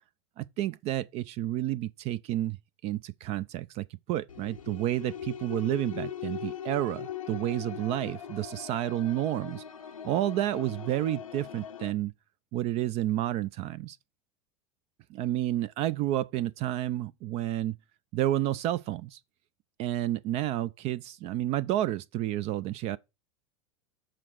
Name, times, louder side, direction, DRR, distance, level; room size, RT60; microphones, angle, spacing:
voice 1, 0.4-2.6 2.8-9.6 10.0-12.1 12.5-14.0 15.1-17.7 18.1-19.2 19.8-23.0, right 13 dB, 40° right, 0.4 m, -30 dB
sound 1, 4.3-11.9, left 9 dB, 80° left, 0.6 m, -40 dB
7.4 x 3.8 x 6.3 m
figure-of-eight pair, 85°, 17 cm